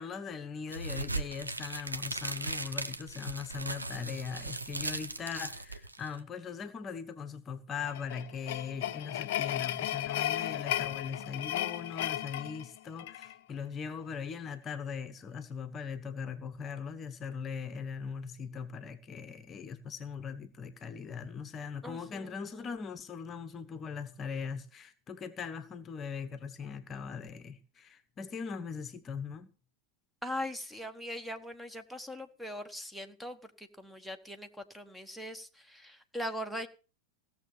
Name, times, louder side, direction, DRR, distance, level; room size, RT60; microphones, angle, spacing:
voice 1, 0.0-29.5, left 6 dB, 25° left, 1.1 m, -40 dB
sound 1, 0.7-6.2, right 2 dB, 80° right, 0.9 m, -38 dB
sound 2, 7.8-13.3, left 13 dB, 50° left, 0.7 m, -35 dB
voice 2, 21.8-22.7 30.2-36.7, left 1 dB, ahead, 1.3 m, -41 dB
16.5 x 7.0 x 7.0 m
figure-of-eight pair, 90°, 0 cm